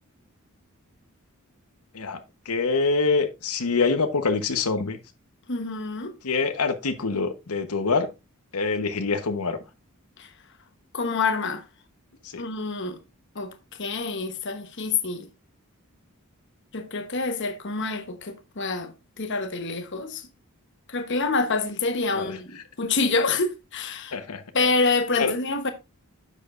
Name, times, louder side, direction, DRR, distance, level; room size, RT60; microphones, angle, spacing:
voice 1, 2.5-5.0 6.2-8.1 8.5-9.6 12.3-12.4 22.1-22.4 24.1-24.4 25.2-25.3, left 4 dB, 85° left, 1.0 m, -25 dB
voice 2, 5.5-6.1 10.2-10.3 10.9-11.6 12.4-13.0 13.3-13.5 13.8-15.3 16.7-18.9 19.2-20.3 20.9-24.1 24.5-25.7, left 4 dB, 55° left, 1.0 m, -27 dB
10.0 x 6.7 x 2.5 m
head